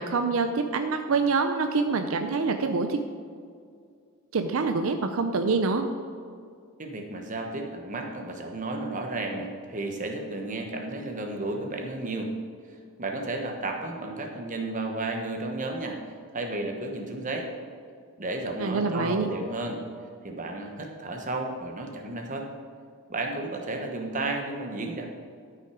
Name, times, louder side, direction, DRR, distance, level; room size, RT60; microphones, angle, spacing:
voice 1, 0.0-3.0 4.3-5.9 18.6-19.3, right 4 dB, 65° right, 7 dB, 0.5 m, -26 dB
voice 2, 6.8-12.3 12.7-16.0 16.3-17.5 18.2-19.8 20.2-22.5 23.1-25.1, right 2 dB, 35° right, 2 dB, 1.1 m, -33 dB
13.0 x 5.8 x 4.9 m, 2.2 s
head